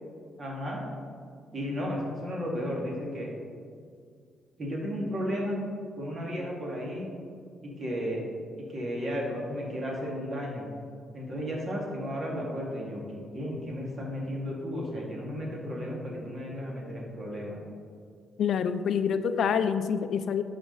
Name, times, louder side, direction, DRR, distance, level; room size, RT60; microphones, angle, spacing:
voice 1, 0.4-0.8 1.5-3.3 4.6-5.6 6.0-7.0 7.6-8.2 8.7-10.6 11.1-17.6, equal, 45° right, -2 dB, 2.2 m, -34 dB
voice 2, 18.4-20.4, left 7 dB, 65° left, 10 dB, 0.4 m, -26 dB
11.0 x 5.2 x 4.0 m, 2.2 s
cardioid pair, 90°, 0 cm